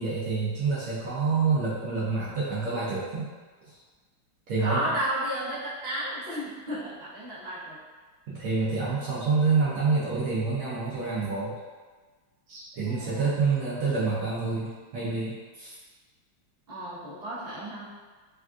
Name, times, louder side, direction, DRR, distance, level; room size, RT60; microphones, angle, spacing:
voice 1, 0.0-3.3 3.7-3.8 4.5-5.0 8.3-11.5 12.5-15.7, right 4 dB, 85° right, -9 dB, 0.7 m, -27 dB
voice 2, 4.6-7.8 12.9-13.3 16.7-17.9, right 1 dB, 40° right, -10 dB, 0.8 m, -33 dB
3.4 x 2.4 x 2.4 m, 1.4 s
omnidirectional pair, 2.2 m